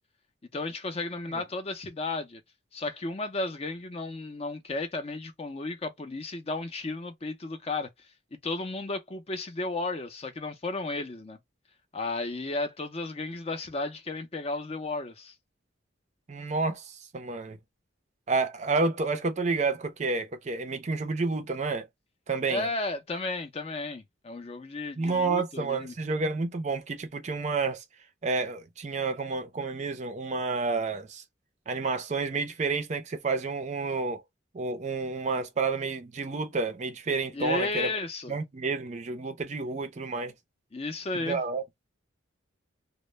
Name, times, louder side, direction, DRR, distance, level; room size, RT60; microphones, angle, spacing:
voice 1, 0.5-2.4 2.7-7.9 8.4-11.4 11.9-15.3 22.5-25.9 37.3-38.4 40.7-41.4, left 3 dB, 30° left, 0.5 m, -33 dB
voice 2, 16.3-17.6 18.3-21.9 22.3-22.7 25.0-27.8 28.2-31.2 31.7-34.2 34.5-37.9 38.3-40.3 41.1-41.6, right 4 dB, 35° right, 0.4 m, -30 dB
2.1 x 2.0 x 3.0 m
head